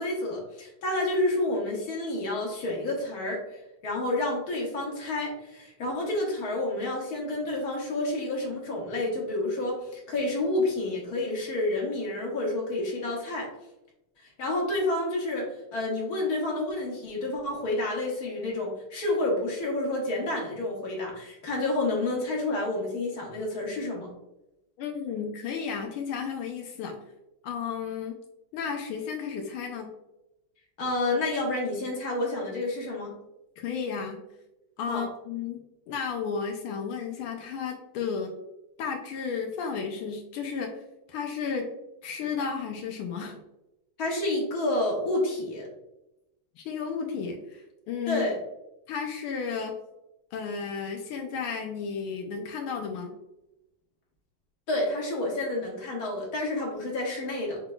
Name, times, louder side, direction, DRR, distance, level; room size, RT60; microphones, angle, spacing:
voice 1, 0.0-3.4 3.8-13.5 14.4-24.1 30.8-33.1 34.9-35.0 44.0-45.7 48.1-48.4 54.7-57.6, left 2 dB, 50° left, -2 dB, 1.7 m, -29 dB
voice 2, 24.8-27.0 27.4-28.2 28.5-29.9 33.6-34.2 34.8-35.6 35.9-38.3 38.8-40.7 41.1-41.7 42.0-43.4 46.6-48.3 48.9-49.8 50.3-53.1, left 6 dB, 85° left, 2 dB, 1.5 m, -33 dB
5.8 x 3.7 x 2.2 m, 0.92 s
omnidirectional pair, 2.3 m